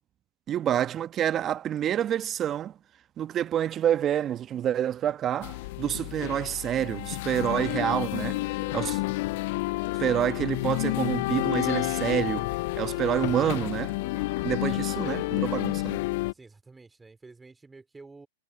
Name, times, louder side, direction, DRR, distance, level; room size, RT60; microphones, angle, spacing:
voice 1, 0.5-2.7 3.2-8.4 8.7-9.0 9.9-12.5 12.8-14.0 14.4-16.0, right 10 dB, 30° right, 1.2 m, -28 dB
sound 1, 5.4-16.3, left 22 dB, 55° left, 0.3 m, -30 dB
voice 2, 8.1-8.8 14.0-14.5 16.3-18.3, right 3 dB, 10° right, 4.6 m, -50 dB
hypercardioid pair, 100°, 0 cm